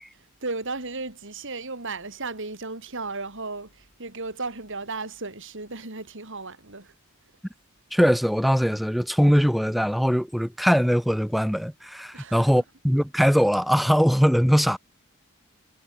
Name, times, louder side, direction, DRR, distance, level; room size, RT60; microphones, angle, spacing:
voice 1, 0.4-7.0 12.1-12.6, right 3 dB, 60° right, 4.6 m, -35 dB
voice 2, 7.9-14.8, equal, ahead, 0.9 m, -21 dB
head